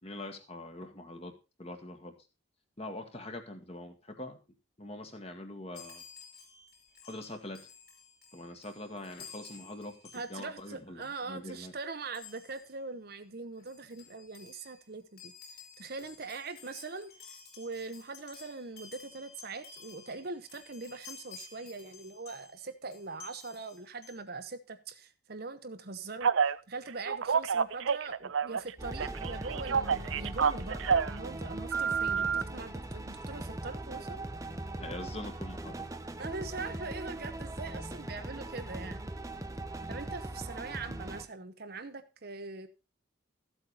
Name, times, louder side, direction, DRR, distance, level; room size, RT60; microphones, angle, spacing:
voice 1, 0.0-1.3 1.6-2.1 2.8-4.4 4.8-6.0 7.0-7.7 8.3-10.0 10.3-11.7 32.1-32.3 34.8-35.9 39.8-39.9, left 1 dB, 30° left, 1.7 m, -43 dB
Chime, 5.7-10.7 11.0-11.2 12.1-12.7 13.3-13.4 13.6-22.6 22.9-24.2, left 6 dB, 45° left, 3.6 m, -53 dB
voice 2, 10.1-15.3 15.8-17.1 17.6-26.3 26.7-34.3 36.2-39.1 39.9-42.7, right 3 dB, 50° right, 0.9 m, -42 dB
Telephone, 26.2-26.6 27.1-28.7 29.0-31.2 31.7-32.4, right 6 dB, 70° right, 0.5 m, -28 dB
sound 1, 28.8-41.3, right 1 dB, 15° right, 0.8 m, -40 dB
14.0 x 8.0 x 4.1 m
head